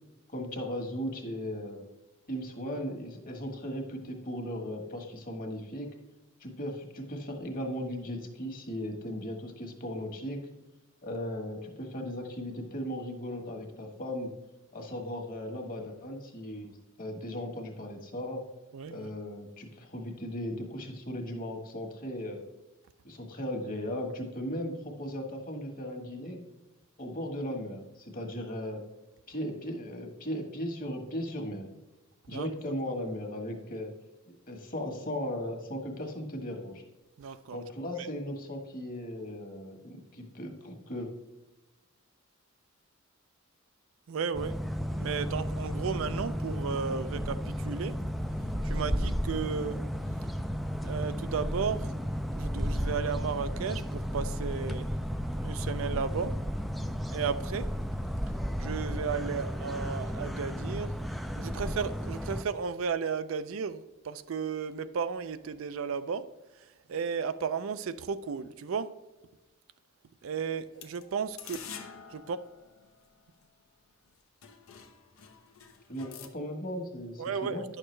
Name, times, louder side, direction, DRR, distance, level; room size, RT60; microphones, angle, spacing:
voice 1, 0.3-1.8 2.3-5.9 6.4-10.4 11.0-14.3 14.7-18.4 18.9-22.4 23.0-26.4 27.0-28.8 29.3-31.7 32.3-33.9 34.5-36.8 37.5-41.1 75.9-77.6, equal, 40° left, 1.4 m, -37 dB
voice 2, 18.7-19.1 32.3-32.7 37.2-37.6 38.0-38.1 44.1-44.6 44.9-48.0 48.6-49.8 50.8-51.9 52.3-54.9 55.4-56.4 57.1-57.7 58.6-66.3 66.6-68.9 70.2-71.6 72.1-72.4 77.2-77.6, right 6 dB, 70° right, 0.4 m, -34 dB
sound 1, 44.3-62.4, equal, ahead, 0.3 m, -33 dB
sound 2, 70.7-73.4 74.0-74.1 74.4-76.3, left 7 dB, 80° left, 0.8 m, -48 dB
9.9 x 6.5 x 3.2 m
head